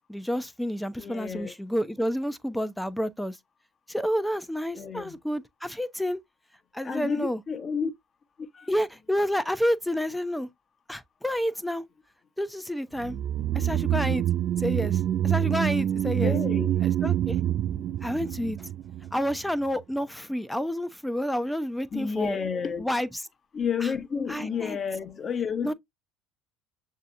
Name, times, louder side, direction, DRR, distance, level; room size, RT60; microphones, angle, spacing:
voice 1, 0.1-3.4 3.9-6.2 6.7-7.4 8.7-10.5 10.9-11.8 12.4-13.2 13.5-14.2 14.6-16.4 16.8-17.4 18.0-18.7 19.1-22.4 22.8-23.2 23.8-23.9 24.3-24.8 25.6-25.7, equal, 5° left, 0.6 m, -29 dB
voice 2, 1.0-1.5 4.7-5.2 6.8-7.9 8.5-8.7 16.2-16.9 21.9-22.8 23.5-25.7, left 6 dB, 35° left, 0.9 m, -31 dB
sound 1, 13.0-19.4 19.7-19.8, right 11 dB, 55° right, 0.3 m, -26 dB
6.6 x 2.8 x 2.5 m
hypercardioid pair, 80°, 0 cm